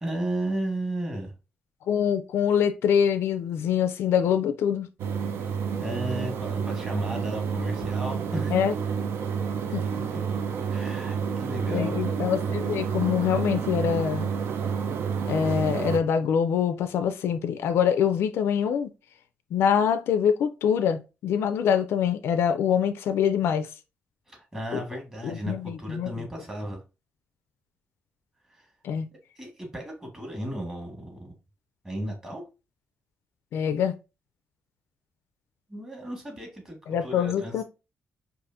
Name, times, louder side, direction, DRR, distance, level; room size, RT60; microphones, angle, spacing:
voice 1, 0.0-1.3 5.8-8.6 10.1-10.2 10.7-11.9 24.3-26.8 29.4-31.3 31.8-32.4 35.7-37.6, right 1 dB, 15° right, 1.6 m, -34 dB
voice 2, 1.9-4.9 8.5-8.7 9.7-9.8 11.7-14.3 15.3-18.9 19.5-23.7 25.2-26.1 28.8-29.1 33.5-34.0 36.9-37.6, left 8 dB, 85° left, 0.4 m, -24 dB
sound 1, 5.0-16.0, right 6 dB, 75° right, 0.5 m, -29 dB
4.8 x 2.5 x 2.5 m
cardioid pair, 125°, 4 cm